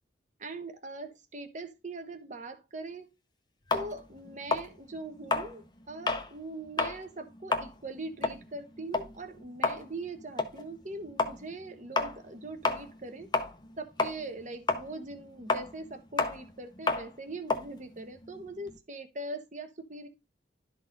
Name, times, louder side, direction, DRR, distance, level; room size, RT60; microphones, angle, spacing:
voice 1, 0.4-3.1 3.7-13.3 13.8-20.1, right 2 dB, 40° right, 1.1 m, -41 dB
sound 1, 3.7-6.3 6.7-7.0 7.3-13.7 14.0-18.8, left 3 dB, 20° left, 0.8 m, -31 dB
12.0 x 4.1 x 3.9 m
head